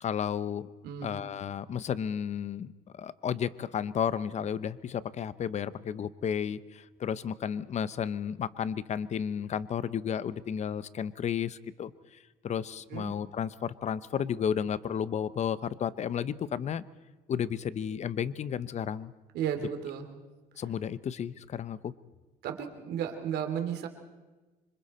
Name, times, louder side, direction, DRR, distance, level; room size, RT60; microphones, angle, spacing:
voice 1, 0.0-0.7 1.0-12.2 12.4-16.8 17.3-19.1 20.6-21.9, left 8 dB, 40° left, 16 dB, 0.8 m, -33 dB
voice 2, 0.8-1.2 12.9-13.1 19.3-20.1 22.4-23.9, right 8 dB, 75° right, 5 dB, 3.0 m, -33 dB
27.0 x 25.0 x 4.3 m, 1.2 s
cardioid pair, 110°, 17 cm